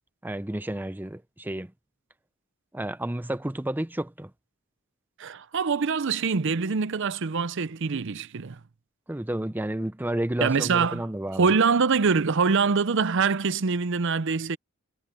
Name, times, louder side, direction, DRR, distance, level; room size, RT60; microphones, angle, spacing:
voice 1, 0.2-1.7 2.7-4.3 9.1-11.5, right 1 dB, 10° right, 0.5 m, -31 dB
voice 2, 5.2-8.6 10.4-11.0 11.4-14.6, right 5 dB, 60° right, 0.6 m, -24 dB
head